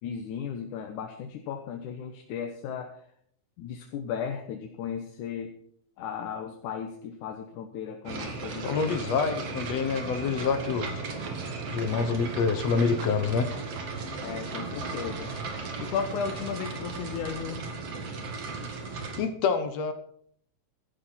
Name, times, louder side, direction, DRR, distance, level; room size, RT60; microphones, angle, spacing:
voice 1, 0.0-3.0 3.6-5.5 6.0-9.0 14.2-15.3 15.8-17.6, left 7 dB, 85° left, 3 dB, 2.7 m, -35 dB
sound 1, 8.1-19.2, right 4 dB, 55° right, 2.8 m, -36 dB
voice 2, 8.6-11.0 11.7-13.5 19.2-19.9, left 5 dB, 65° left, 9 dB, 2.2 m, -27 dB
16.0 x 12.0 x 4.4 m, 0.63 s
omnidirectional pair, 3.4 m